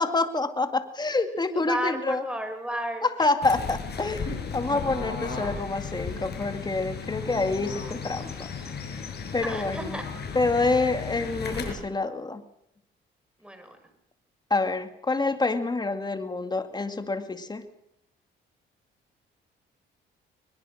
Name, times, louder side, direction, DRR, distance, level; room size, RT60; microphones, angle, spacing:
voice 1, 0.0-2.2 3.0-8.5 8.9-9.0 9.3-10.0 10.3-12.4 14.5-17.7, left 3 dB, 20° left, 8 dB, 2.3 m, -27 dB
voice 2, 1.5-3.3 9.4-10.0 13.4-13.8, equal, 5° right, 6 dB, 5.9 m, -33 dB
Fowl / Bird, 3.4-11.7, left 5 dB, 55° left, 6.0 m, -35 dB
22.0 x 21.0 x 6.5 m, 0.75 s
cardioid pair, 90°, 20 cm